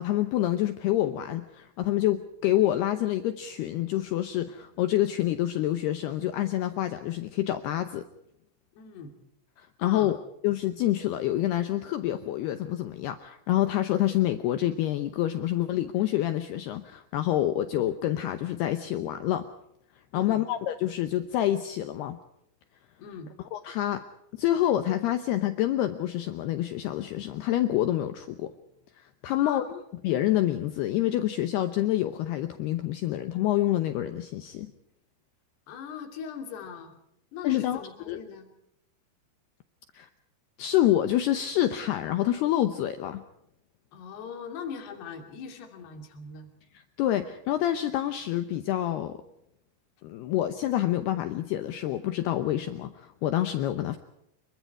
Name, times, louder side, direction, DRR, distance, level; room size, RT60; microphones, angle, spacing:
voice 1, 0.0-8.0 9.6-19.5 20.1-22.2 23.5-24.0 24.4-28.5 29.0-29.6 30.0-34.7 37.4-37.8 38.1-38.2 39.9-40.1 40.6-43.2 47.0-49.2 50.0-54.0, left 13 dB, 80° left, 9 dB, 2.3 m, -27 dB
voice 2, 8.8-9.1 9.8-10.1 20.1-20.4 23.0-23.3 29.3-29.9 35.7-37.0 37.3-38.5 43.9-46.5, left 6 dB, 60° left, 5 dB, 4.5 m, -40 dB
27.0 x 23.0 x 4.8 m, 0.77 s
omnidirectional pair, 5.8 m